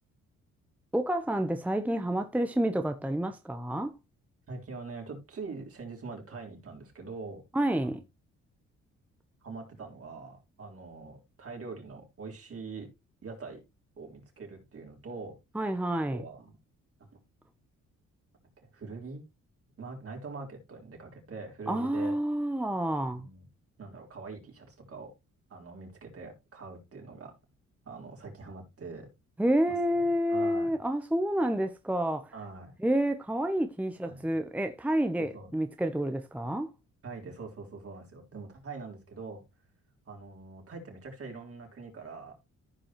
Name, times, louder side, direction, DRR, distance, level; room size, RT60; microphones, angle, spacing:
voice 1, 0.9-3.9 7.5-8.0 15.5-16.2 21.7-23.3 29.4-32.3 32.8-36.7, right 1 dB, 5° right, 0.8 m, -29 dB
voice 2, 4.5-7.4 7.8-7.9 9.4-12.9 13.2-13.6 14.0-15.3 16.1-16.5 17.0-17.2 18.6-19.3 19.8-22.2 23.1-23.5 23.8-25.1 25.5-27.3 27.8-29.1 29.7-29.8 30.3-30.7 32.3-32.8 34.1-34.3 35.2-35.5 37.0-39.4 40.1-42.3, right 4 dB, 50° right, 4.1 m, -43 dB
14.5 x 5.3 x 3.0 m
cardioid pair, 90°, 30 cm